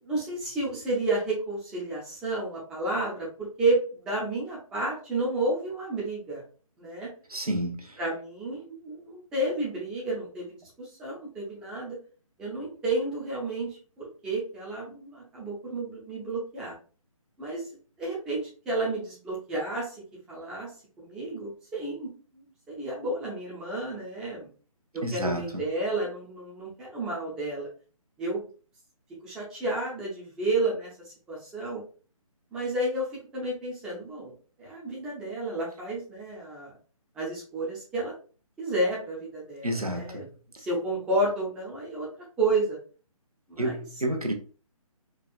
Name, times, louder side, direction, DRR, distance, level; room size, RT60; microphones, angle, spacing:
voice 1, 0.0-3.3 3.6-6.4 6.8-7.1 8.0-12.0 12.4-16.7 17.4-19.9 20.3-20.7 21.0-24.5 24.9-27.7 28.2-28.5 29.2-31.8 32.5-34.3 34.6-36.7 37.2-38.1 38.6-40.3 40.6-42.1 42.4-42.8 43.5-43.8, right 2 dB, 5° right, 0.5 m, -31 dB
voice 2, 7.3-8.0 25.0-25.6 39.6-40.2 43.6-44.3, right 1 dB, 85° right, 0.9 m, -30 dB
4.5 x 2.3 x 2.4 m
figure-of-eight pair, 140°, 19 cm